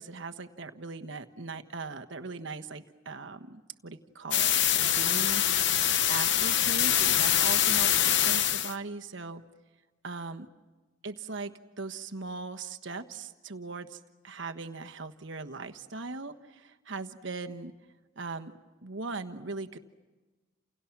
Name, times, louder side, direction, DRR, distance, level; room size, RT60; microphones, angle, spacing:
voice 1, 0.0-5.8 6.1-9.4 10.0-10.5 11.0-17.7 18.2-18.5 18.8-19.8, right 3 dB, 65° right, 7 dB, 1.3 m, -39 dB
sound 1, 4.3-8.7, left 11 dB, 60° left, 0.9 m, -24 dB
30.0 x 29.0 x 6.0 m, 1.2 s
head